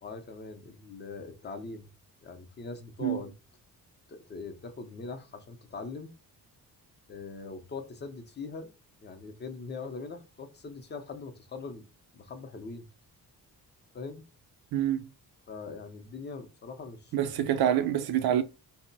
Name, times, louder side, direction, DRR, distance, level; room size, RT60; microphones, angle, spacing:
voice 1, 0.0-1.9 2.2-3.3 4.1-6.1 7.1-8.7 9.0-11.8 12.1-12.8 13.9-14.2 15.5-17.1, left 4 dB, 30° left, 0.5 m, -41 dB
voice 2, 14.7-15.1 17.1-18.4, right 10 dB, 80° right, 0.5 m, -26 dB
2.2 x 2.0 x 3.8 m
wide cardioid pair, 130°, 37 cm